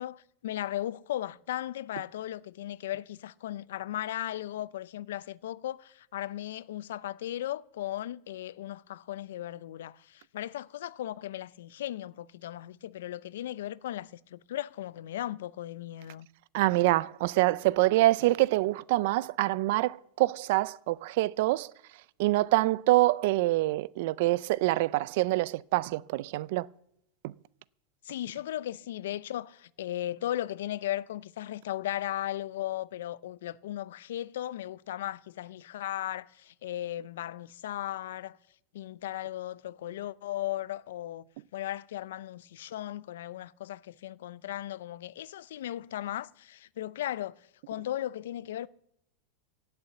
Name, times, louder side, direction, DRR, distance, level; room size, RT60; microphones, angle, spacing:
voice 1, 0.0-16.3 28.0-38.4 38.7-41.2 41.5-47.4 47.7-48.7, left 13 dB, 80° left, 0.6 m, -36 dB
voice 2, 16.5-21.7 22.2-26.7 27.2-27.3, right 18 dB, 50° right, 0.4 m, -25 dB
16.0 x 6.8 x 8.2 m
supercardioid pair, 170°, 0 cm